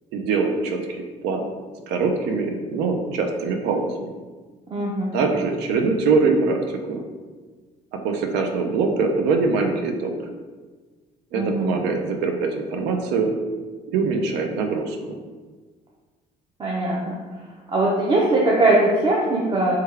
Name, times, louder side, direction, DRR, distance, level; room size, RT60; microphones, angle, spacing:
voice 1, 0.1-1.5 1.9-4.1 5.1-7.0 7.9-10.1 11.3-13.3 13.9-15.2, right 4 dB, 90° right, 4 dB, 0.4 m, -23 dB
voice 2, 4.7-5.1 11.3-11.7 16.6-17.2 17.7-19.8, right 2 dB, 30° right, -5 dB, 0.5 m, -20 dB
3.4 x 2.2 x 3.2 m, 1.4 s
cardioid pair, 110°, 17 cm